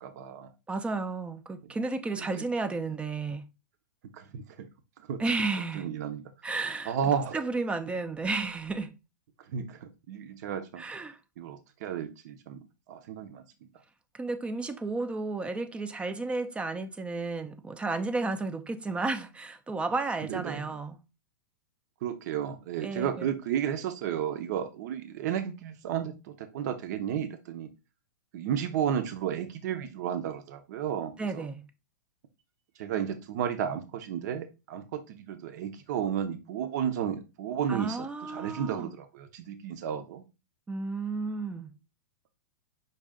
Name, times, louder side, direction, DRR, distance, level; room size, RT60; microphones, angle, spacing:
voice 1, 0.0-0.5 2.2-2.4 4.1-4.7 5.1-5.2 5.7-6.2 6.9-7.4 9.5-10.8 11.4-12.6 12.9-13.7 20.3-20.8 22.0-27.7 28.3-31.5 32.8-40.2, right 9 dB, 60° right, 0.7 m, -33 dB
voice 2, 0.7-3.4 5.2-5.9 6.4-7.0 7.3-8.9 10.8-11.2 14.1-21.0 22.8-23.3 31.2-31.6 37.7-38.9 40.7-41.7, right 3 dB, 10° right, 0.4 m, -32 dB
5.4 x 2.4 x 3.6 m
hypercardioid pair, 130°, 11 cm